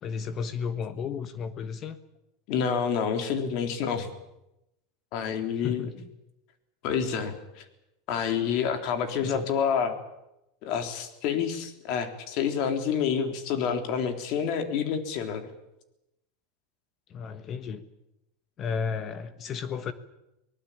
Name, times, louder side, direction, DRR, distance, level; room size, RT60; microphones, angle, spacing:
voice 1, 0.0-2.0 5.6-6.1 9.2-9.5 17.1-17.9 18.6-19.9, left 6 dB, 30° left, 12 dB, 1.3 m, -33 dB
voice 2, 2.5-4.1 5.1-5.9 6.8-7.6 8.1-10.0 10.6-15.5, left 7 dB, 50° left, 7 dB, 3.5 m, -28 dB
24.0 x 19.0 x 8.7 m, 0.89 s
supercardioid pair, 150°, 0 cm